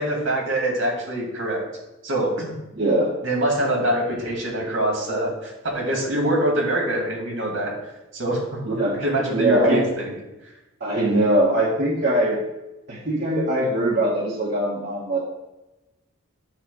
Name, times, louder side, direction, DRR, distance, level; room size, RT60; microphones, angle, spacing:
voice 1, 0.0-1.6 2.0-2.6 3.2-7.7 8.1-8.4 8.7-10.1, right 1 dB, 70° right, -1 dB, 2.5 m, -24 dB
voice 2, 2.8-3.1 8.6-9.0 9.3-9.8 10.8-12.4 12.9-15.2, right 1 dB, 50° right, -6 dB, 1.4 m, -21 dB
8.8 x 3.3 x 6.3 m, 1.0 s
head